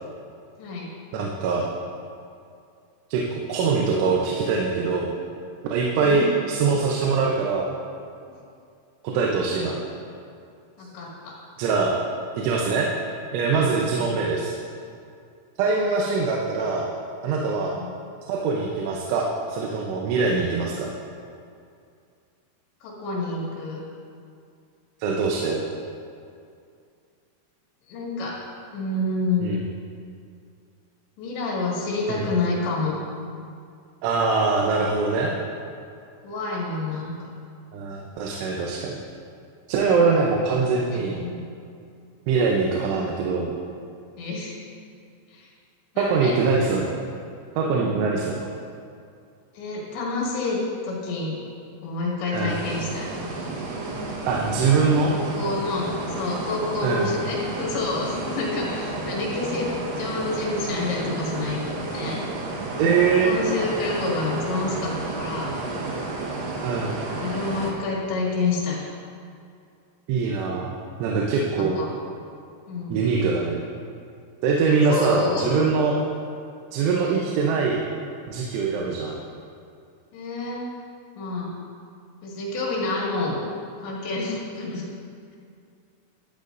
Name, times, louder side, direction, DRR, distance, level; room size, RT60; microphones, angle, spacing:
voice 1, 1.1-1.7 3.1-3.2 3.5-5.1 5.7-7.7 9.0-9.8 11.6-12.0 12.3-12.9 13.3-14.6 15.6-16.9 17.2-17.7 18.3-20.9 25.0-25.6 29.4-29.6 32.1-32.3 34.0-35.3 37.7-39.0 39.7-41.2 42.3-43.5 46.0-47.0 47.6-48.4 52.3-52.6 54.3-55.1 56.8-57.1 62.8-63.3 66.6-66.9 70.1-71.8 72.9-73.6 74.4-76.0 76.7-77.8 78.3-79.1, right 4 dB, 85° right, -2 dB, 3.3 m, -23 dB
voice 2, 6.0-6.3 10.8-11.3 14.0-14.1 17.6-17.9 22.8-23.8 27.9-28.4 28.7-29.5 31.2-33.0 36.2-37.3 40.9-41.4 44.2-44.5 45.3-45.5 46.0-46.4 49.5-51.4 51.8-53.1 55.1-62.2 63.0-65.6 67.2-68.8 71.6-71.9 72.7-73.0 74.7-75.5 80.1-80.7 81.2-81.5 82.2-83.4 83.8-84.8, left 3 dB, 70° left, -5 dB, 4.2 m, -28 dB
sound 1, 52.5-67.7, right 2 dB, 65° right, 2.5 m, -31 dB
15.0 x 12.0 x 2.6 m, 2.4 s
omnidirectional pair, 5.4 m